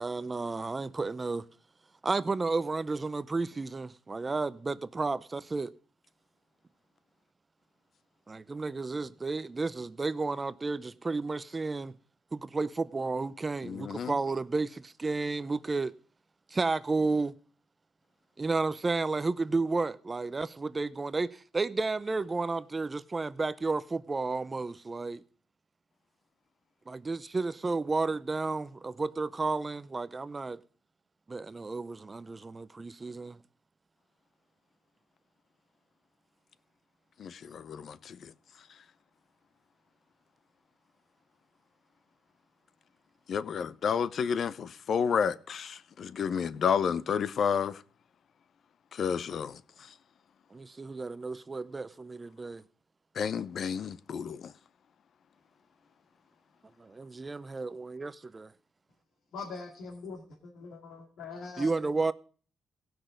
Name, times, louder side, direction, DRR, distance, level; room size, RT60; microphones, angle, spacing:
voice 1, 0.0-1.4 2.0-5.7 8.3-11.9 12.3-15.9 16.5-17.3 18.4-25.2 26.9-30.6 31.3-33.4 50.5-52.6 56.8-58.5 61.6-62.1, right 3 dB, 25° right, 0.5 m, -32 dB
voice 2, 13.6-14.1 37.2-38.3 43.3-47.8 48.9-49.6 53.2-54.5, left 7 dB, 55° left, 0.6 m, -31 dB
voice 3, 59.3-61.7, left 4 dB, 80° left, 2.4 m, -42 dB
17.0 x 6.1 x 5.1 m
cardioid pair, 90°, 0 cm